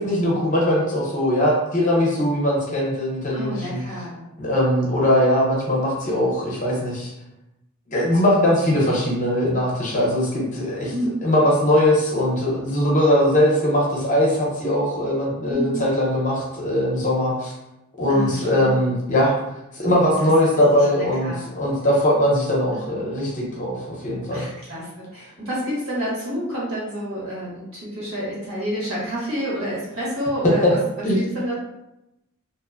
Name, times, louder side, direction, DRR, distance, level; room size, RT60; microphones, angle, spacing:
voice 1, 0.0-3.8 4.4-7.1 7.9-10.9 11.2-17.5 18.0-19.4 19.8-24.5 30.4-30.7 31.0-31.2, left 1 dB, 35° left, -3 dB, 0.6 m, -20 dB
voice 2, 3.3-4.2 6.0-6.2 10.9-11.1 15.5-15.9 18.1-18.9 20.2-21.4 22.7-23.0 24.3-31.5, equal, 75° right, -6 dB, 1.3 m, -29 dB
2.8 x 2.1 x 2.4 m, 0.90 s
head